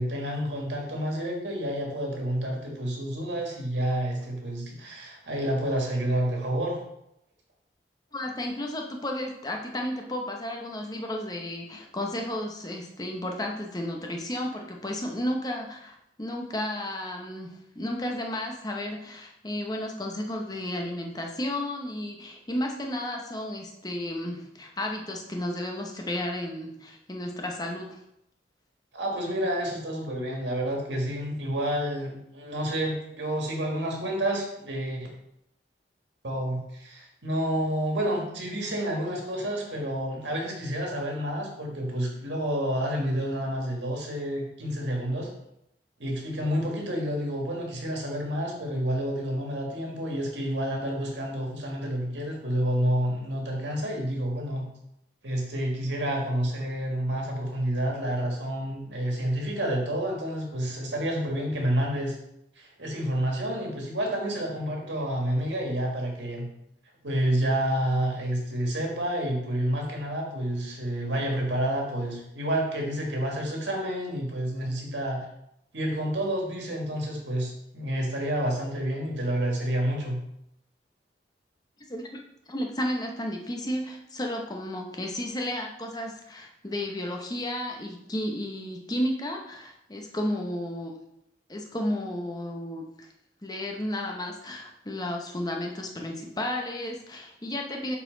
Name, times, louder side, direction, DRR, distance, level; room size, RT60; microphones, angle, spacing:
voice 1, 0.0-6.8 28.9-35.1 36.2-45.3 46.0-54.7 55.2-62.2 62.6-66.5 67.0-75.3 75.7-80.2, right 1 dB, 85° right, 0 dB, 1.8 m, -29 dB
voice 2, 8.1-28.0 81.9-82.2 82.5-90.9 91.5-93.1 93.4-98.0, left 1 dB, 20° left, 2 dB, 0.8 m, -33 dB
7.2 x 4.1 x 3.9 m, 0.79 s
head